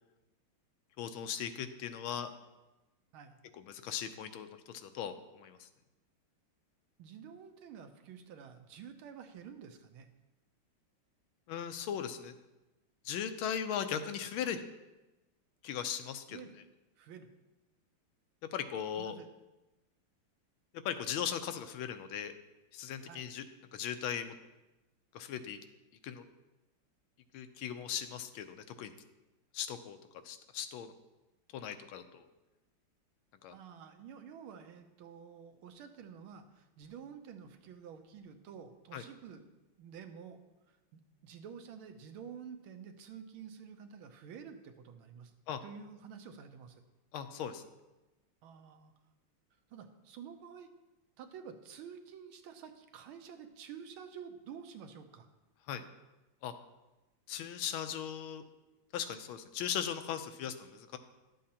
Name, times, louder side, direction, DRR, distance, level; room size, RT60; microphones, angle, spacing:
voice 1, 1.0-2.3 3.7-5.7 11.5-12.3 13.0-14.6 15.6-16.4 18.5-19.2 20.8-22.3 22.7-23.4 23.7-24.4 25.1-25.6 26.0-26.2 27.3-28.9 29.5-30.0 30.2-30.9 31.5-32.3 33.4-33.6 38.9-39.0 45.5-45.6 47.1-47.6 55.7-55.8 56.4-56.5 57.3-58.4 58.9-61.0, left 8 dB, 90° left, 9 dB, 1.5 m, -38 dB
voice 2, 7.0-10.1 16.3-16.5 17.0-17.3 19.0-19.3 23.0-23.3 33.5-39.4 39.8-40.4 40.7-45.3 45.6-46.8 48.4-48.9 49.7-50.7 51.2-55.3, right 7 dB, 85° right, 7 dB, 1.6 m, -50 dB
11.5 x 7.5 x 2.8 m, 1.0 s
omnidirectional pair, 2.3 m